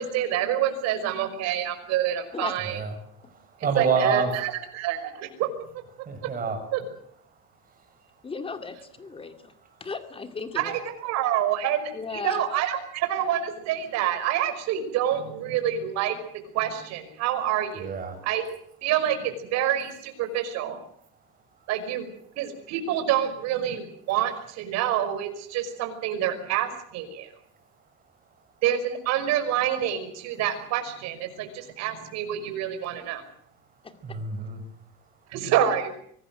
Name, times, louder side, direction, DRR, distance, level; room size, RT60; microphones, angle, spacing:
voice 1, 0.0-2.8 3.8-5.5 6.7-6.8 10.6-16.2 16.5-17.9 18.2-18.4 18.8-20.8 21.7-22.1 22.4-27.3 28.6-33.2 35.3-35.9, right 10 dB, 65° right, 7 dB, 5.6 m, -27 dB
voice 2, 2.6-4.4 6.0-6.6 7.3-8.3 9.7-9.9 17.7-18.2 21.1-21.2 21.5-21.7 27.5-28.5 31.3-31.7 33.4-35.4, right 5 dB, 30° right, 6 dB, 6.9 m, -31 dB
voice 3, 8.2-9.5 9.8-10.7 11.9-12.4 33.8-34.2, left 4 dB, 20° left, 7 dB, 2.4 m, -36 dB
24.5 x 18.5 x 7.9 m, 0.69 s
cardioid pair, 150°, 29 cm